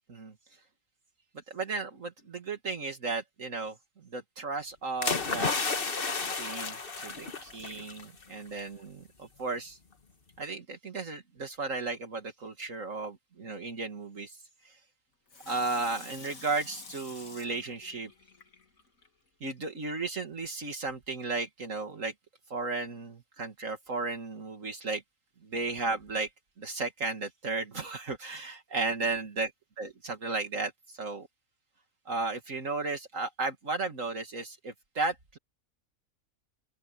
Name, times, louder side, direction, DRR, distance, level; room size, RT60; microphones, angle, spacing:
voice 1, 1.5-3.8 4.1-5.5 6.4-9.8 10.4-14.4 15.5-18.1 19.4-22.1 22.5-25.0 25.4-26.3 26.6-29.5 29.8-31.3 32.1-35.4, right 3 dB, 70° right, 2.5 m, -34 dB
sound 1, 5.0-8.0 8.4-8.6, left 4 dB, 40° left, 1.6 m, -32 dB
Water tap faucet / Sink (filling or washing), 15.3-19.1 19.6-19.7, left 4 dB, 85° left, 2.8 m, -49 dB
open air
omnidirectional pair, 1.4 m